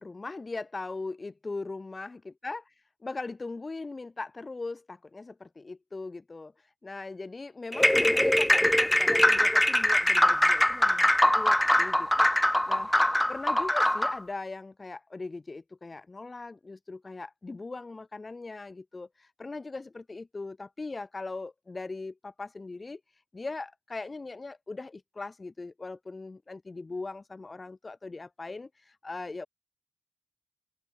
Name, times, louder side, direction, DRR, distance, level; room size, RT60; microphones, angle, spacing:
voice 1, 0.0-2.6 3.0-6.5 6.8-13.0 13.3-23.0 23.3-29.5, left 3 dB, 35° left, 3.7 m, -39 dB
sound 1, 7.7-14.2, left 1 dB, 10° left, 1.3 m, -23 dB
open air
wide cardioid pair, 110°, 0 cm